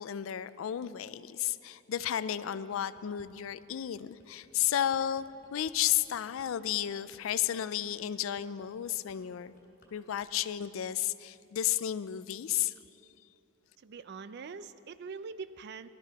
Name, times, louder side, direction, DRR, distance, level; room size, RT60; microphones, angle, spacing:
voice 1, 0.0-5.2 5.5-9.5 9.9-12.7, left 11 dB, 75° left, 15 dB, 0.4 m, -32 dB
sound 1, 2.7-3.3 3.7-9.9 10.2-10.5, left 1 dB, 55° left, 2.9 m, -63 dB
voice 2, 13.8-15.9, right 5 dB, 55° right, 13 dB, 0.4 m, -43 dB
18.0 x 12.5 x 4.1 m, 2.8 s
head